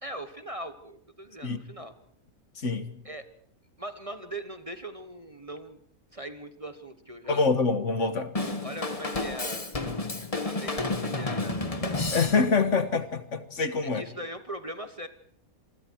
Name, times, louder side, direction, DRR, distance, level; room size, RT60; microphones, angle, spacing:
voice 1, 0.0-1.9 3.0-3.2 3.8-5.8 6.1-7.5 8.6-9.7 10.4-12.0 13.8-15.1, right 1 dB, 25° right, 1.2 m, -40 dB
voice 2, 2.6-2.9 7.3-8.3 12.1-14.0, left 4 dB, 60° left, 1.8 m, -25 dB
Drum kit / Drum, 8.4-12.7, left 2 dB, 25° left, 1.6 m, -31 dB
27.0 x 23.5 x 4.7 m
omnidirectional pair, 1.5 m